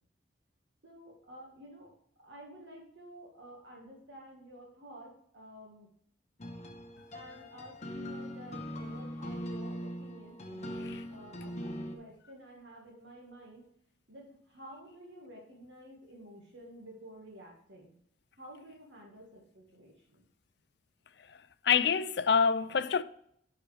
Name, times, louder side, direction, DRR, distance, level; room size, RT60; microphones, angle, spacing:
voice 1, 0.8-1.9 2.2-5.9 7.1-13.6 14.1-17.9 18.4-20.2, equal, 75° right, 1.8 m, -51 dB
sound 1, 6.4-12.0, equal, 35° left, 0.9 m, -41 dB
voice 2, 21.6-23.0, left 6 dB, 60° left, 0.4 m, -26 dB
11.0 x 4.8 x 3.4 m
head